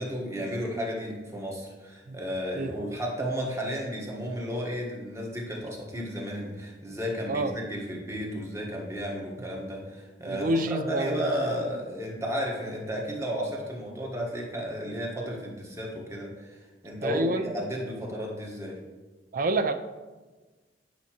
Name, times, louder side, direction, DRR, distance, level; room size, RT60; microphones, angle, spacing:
voice 1, 0.0-18.8, equal, 15° right, -1 dB, 1.3 m, -33 dB
voice 2, 10.3-11.3 17.0-17.5 19.3-19.7, right 2 dB, 50° right, 9 dB, 0.4 m, -27 dB
9.3 x 5.8 x 3.0 m, 1.3 s
head